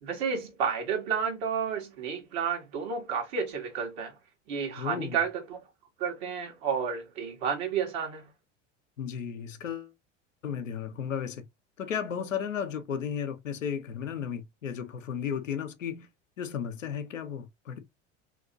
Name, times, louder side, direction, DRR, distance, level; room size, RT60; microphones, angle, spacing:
voice 1, 0.0-4.1 4.5-5.6 6.0-8.3, right 6 dB, 55° right, 1.4 m, -31 dB
voice 2, 4.8-5.2 9.0-9.9 10.4-11.4 11.8-16.1 16.4-17.8, left 7 dB, 85° left, 0.7 m, -34 dB
2.9 x 2.9 x 2.5 m
figure-of-eight pair, 80°, 38 cm